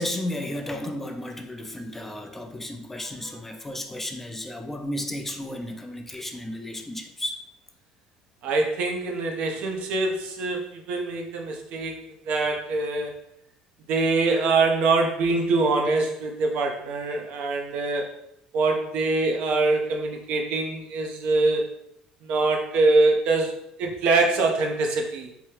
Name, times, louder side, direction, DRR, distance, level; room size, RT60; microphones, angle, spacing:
voice 1, 0.0-7.4, left 1 dB, 10° left, 0.4 m, -33 dB
voice 2, 8.4-13.1 13.9-18.2 18.5-21.7 22.2-23.5 23.8-25.3, right 3 dB, 65° right, 0.6 m, -24 dB
2.9 x 2.2 x 3.2 m
supercardioid pair, 80°, 2 cm